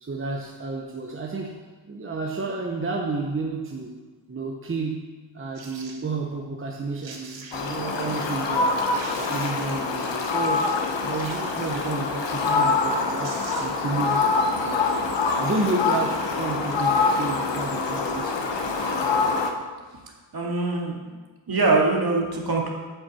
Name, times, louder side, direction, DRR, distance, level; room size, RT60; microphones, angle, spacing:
voice 1, 0.0-1.6 1.9-4.0 4.3-5.1 5.3-10.7 11.0-14.3 14.6-15.0 15.3-18.4, right 3 dB, 30° right, 0 dB, 1.0 m, -31 dB
sound 1, 5.5-6.0 6.7-6.8 7.0-7.8 8.4-8.5 8.8-9.8 11.1-12.1 12.9-13.0 13.2-13.9 14.3-14.4, right 4 dB, 75° right, 1.4 m, -43 dB
Fowl, 7.5-19.5, left 4 dB, 70° left, 1.2 m, -25 dB
voice 2, 20.3-21.2 21.5-22.7, right 3 dB, 50° right, -1 dB, 2.1 m, -23 dB
8.4 x 6.0 x 7.6 m, 1.3 s
wide cardioid pair, 105°, 45 cm